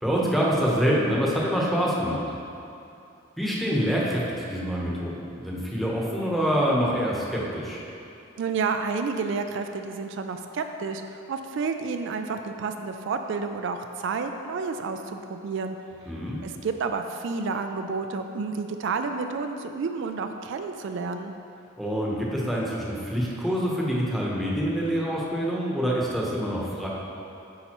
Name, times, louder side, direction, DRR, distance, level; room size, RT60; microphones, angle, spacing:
voice 1, 0.0-2.2 3.4-7.8 16.1-16.4 21.8-26.9, equal, ahead, -5 dB, 0.9 m, -26 dB
voice 2, 8.4-11.0 11.3-15.8 16.4-21.3, right 4 dB, 65° right, 6 dB, 0.3 m, -30 dB
8.5 x 5.4 x 3.0 m, 2.7 s
head